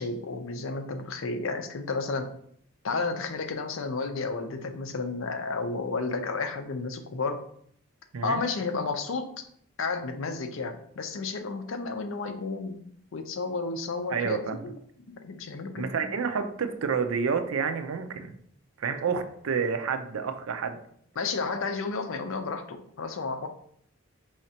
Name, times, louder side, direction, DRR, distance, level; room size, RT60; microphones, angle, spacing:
voice 1, 0.0-2.3 2.8-7.4 8.2-9.4 9.8-12.8 13.1-14.8 15.2-15.9 21.2-23.5, left 4 dB, 70° left, 7 dB, 0.5 m, -32 dB
voice 2, 8.1-8.4 14.1-14.6 15.8-18.3 18.8-20.8, right 5 dB, 80° right, 8 dB, 0.5 m, -29 dB
4.8 x 3.1 x 2.8 m, 0.65 s
head